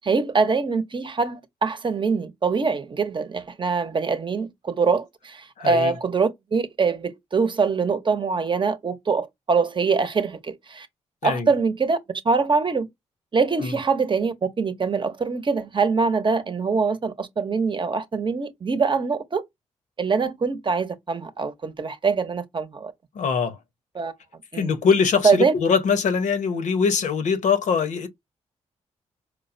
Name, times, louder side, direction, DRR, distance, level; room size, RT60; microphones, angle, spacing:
voice 1, 0.0-10.9 11.2-12.0 12.2-12.9 13.3-19.4 20.0-22.9 23.9-24.1 24.5-24.7 25.2-25.5, right 4 dB, 40° right, 0.8 m, -23 dB
voice 2, 5.6-5.9 11.2-11.5 13.6-13.8 23.1-23.6 24.5-28.1, left 6 dB, 80° left, 0.8 m, -22 dB
4.5 x 2.1 x 2.6 m
cardioid pair, 65°, 12 cm